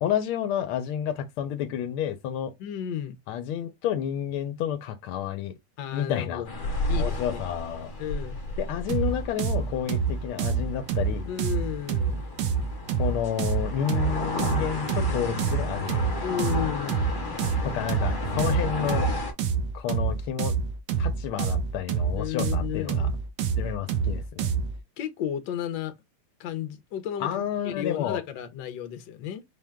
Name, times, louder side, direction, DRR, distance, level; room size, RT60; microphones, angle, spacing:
voice 1, 0.0-2.5 3.3-5.6 5.9-6.4 7.0-7.9 8.6-11.3 13.0-16.1 17.6-19.1 19.7-20.5 21.0-23.1 23.6-24.5 27.2-28.2, left 9 dB, 85° left, 1.5 m, -30 dB
voice 2, 2.6-3.2 5.8-6.5 6.9-7.4 8.0-8.4 11.3-12.2 16.2-17.1 22.1-23.1 25.0-25.9 26.4-29.4, left 10 dB, 70° left, 1.3 m, -33 dB
sound 1, 6.4-19.3, left 1 dB, 40° left, 0.7 m, -33 dB
sound 2, 8.9-24.8, right 6 dB, 70° right, 1.1 m, -27 dB
4.5 x 2.2 x 3.5 m
omnidirectional pair, 2.3 m